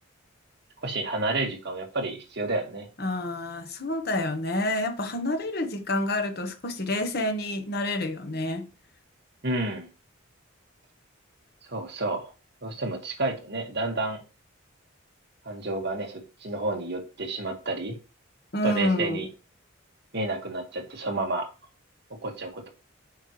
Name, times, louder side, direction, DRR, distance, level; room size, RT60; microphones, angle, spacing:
voice 1, 0.8-2.9 9.4-9.9 11.7-12.3 12.6-14.2 15.4-18.0 18.6-19.3 20.1-21.5 22.1-22.7, right 2 dB, 50° right, 2.0 m, -30 dB
voice 2, 3.0-8.7 18.5-19.2, left 1 dB, 50° left, 1.2 m, -28 dB
9.5 x 5.5 x 3.3 m
head